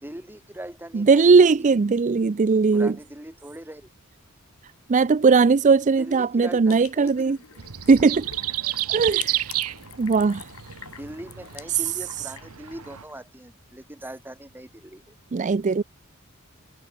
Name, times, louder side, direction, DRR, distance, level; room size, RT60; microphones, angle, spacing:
voice 1, 0.0-1.7 2.7-3.9 6.0-7.4 11.0-15.1, right 1 dB, 10° right, 2.6 m, -40 dB
voice 2, 0.9-2.9 4.9-7.4 7.9-8.3 8.9-9.5 10.0-10.5 11.7-11.8 15.3-15.8, right 4 dB, 35° right, 0.4 m, -19 dB
sound 1, 6.7-13.3, left 9 dB, 70° left, 5.1 m, -45 dB
sound 2, 7.6-13.0, right 14 dB, 85° right, 1.1 m, -31 dB
head